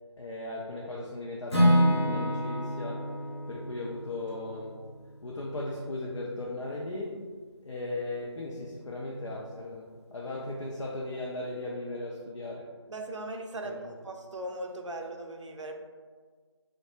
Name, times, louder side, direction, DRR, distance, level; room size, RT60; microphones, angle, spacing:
voice 1, 0.2-3.1 3.5-4.8 5.2-7.3 7.6-12.7 13.6-13.9, left 2 dB, 85° left, -3 dB, 0.4 m, -37 dB
Acoustic guitar / Strum, 1.5-5.5, equal, 65° left, 0.8 m, -28 dB
voice 2, 12.9-15.8, right 1 dB, 80° right, 3 dB, 0.4 m, -38 dB
2.2 x 2.1 x 3.0 m, 1.6 s
figure-of-eight pair, 170°, 15 cm